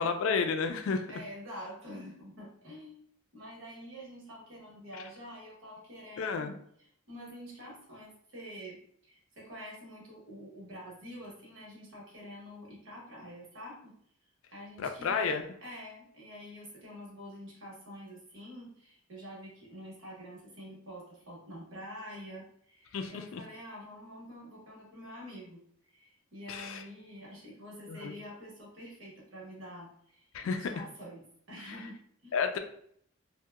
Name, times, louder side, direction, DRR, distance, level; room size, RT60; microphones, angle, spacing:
voice 1, 0.0-1.1 4.9-5.0 6.2-6.6 14.8-15.4 22.9-23.4 26.5-26.8 27.9-28.1 30.3-30.7 31.6-31.8 32.3-32.6, left 5 dB, 70° left, 7 dB, 0.3 m, -31 dB
voice 2, 1.1-3.0 3.3-6.5 7.1-13.9 14.5-32.4, equal, 65° right, -3 dB, 0.9 m, -47 dB
2.7 x 2.1 x 2.2 m, 0.67 s
head